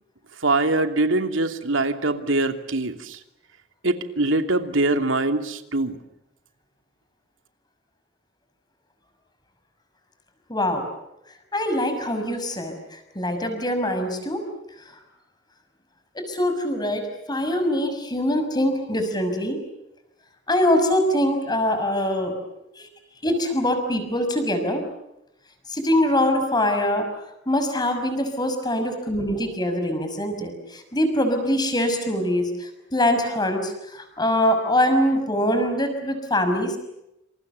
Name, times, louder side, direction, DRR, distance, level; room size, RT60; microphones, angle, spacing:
voice 1, 0.4-3.2 3.8-6.0, right 2 dB, 90° right, 7 dB, 2.8 m, -23 dB
voice 2, 10.5-10.9 11.5-14.4 16.1-19.6 20.5-22.3 22.8-22.9 23.2-24.8 25.7-27.1 27.5-36.8, left 1 dB, 20° left, 7 dB, 6.2 m, -23 dB
28.5 x 27.5 x 6.8 m, 0.86 s
head